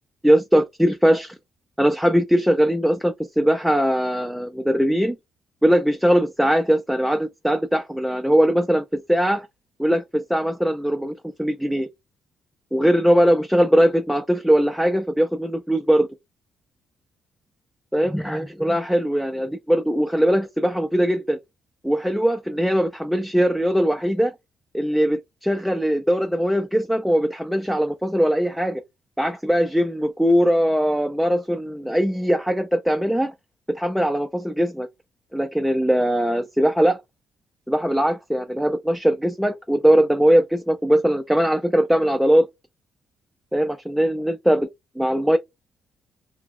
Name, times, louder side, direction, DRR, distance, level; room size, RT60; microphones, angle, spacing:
voice 1, 0.2-1.4 1.8-5.2 5.6-9.5 9.8-11.1 11.4-11.9 12.7-16.1 17.9-21.4 21.8-24.3 24.7-28.8 29.2-33.3 33.7-34.9 35.3-37.0 37.7-42.5 43.5-44.7 45.0-45.4, equal, ahead, 0.3 m, -20 dB
2.2 x 2.0 x 3.5 m
cardioid pair, 90°, 0 cm